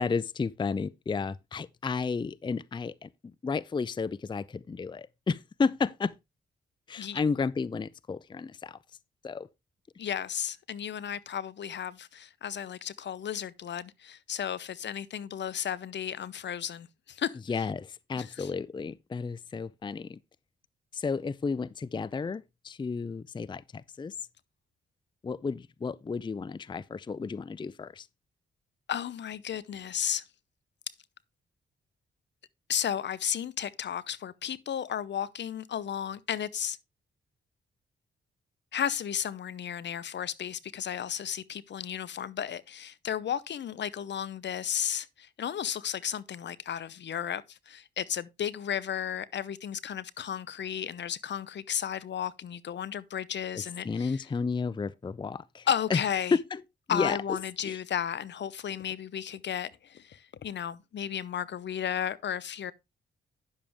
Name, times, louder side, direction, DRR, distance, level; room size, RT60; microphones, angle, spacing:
voice 1, 0.0-6.1 6.9-8.8 9.2-9.5 17.5-20.2 20.9-24.1 25.2-28.1 53.5-56.0 56.3-56.6 56.9-57.2 57.6-57.8, left 5 dB, 20° left, 0.4 m, -32 dB
voice 2, 10.0-17.6 18.2-18.5 28.9-30.2 32.7-36.8 38.7-54.2 55.7-56.4 56.9-62.7, left 9 dB, 60° left, 0.7 m, -34 dB
10.5 x 7.1 x 3.4 m
supercardioid pair, 55°, 21 cm